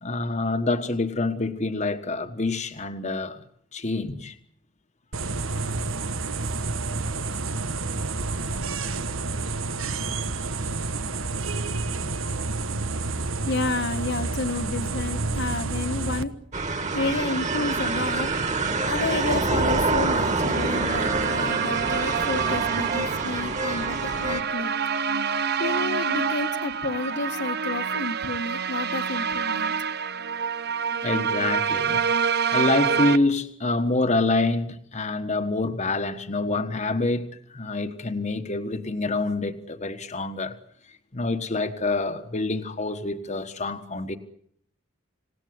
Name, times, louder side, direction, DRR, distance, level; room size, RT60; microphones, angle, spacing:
voice 1, 0.0-3.4 3.7-4.4 10.1-10.2 30.9-32.1 32.5-40.6 41.1-44.2, left 2 dB, 35° left, 1.4 m, -26 dB
sound 1, 5.1-16.2, right 3 dB, 90° right, 1.5 m, -29 dB
voice 2, 13.4-16.3 16.9-24.7 25.6-29.7, left 3 dB, 60° left, 1.7 m, -30 dB
sound 2, 16.5-24.4, right 3 dB, 35° right, 2.8 m, -26 dB
sound 3, 19.8-33.2, right 6 dB, 55° right, 1.0 m, -27 dB
27.5 x 18.5 x 9.6 m
head